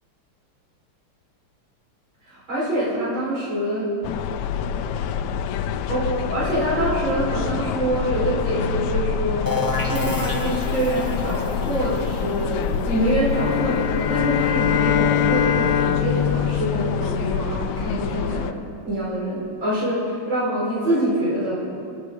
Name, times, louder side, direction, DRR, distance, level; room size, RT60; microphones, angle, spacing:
voice 1, 2.3-3.9 5.9-9.5 9.8-18.5 18.9-21.6, right 1 dB, 60° right, -8 dB, 5.4 m, -25 dB
sound 1, 4.0-18.5, left 7 dB, 85° left, 1.6 m, -27 dB
sound 2, 9.5-15.0, left 3 dB, 15° left, 0.7 m, -31 dB
sound 3, 13.3-17.7, left 10 dB, 70° left, 1.3 m, -23 dB
28.0 x 9.5 x 3.9 m, 2.4 s
omnidirectional pair, 2.4 m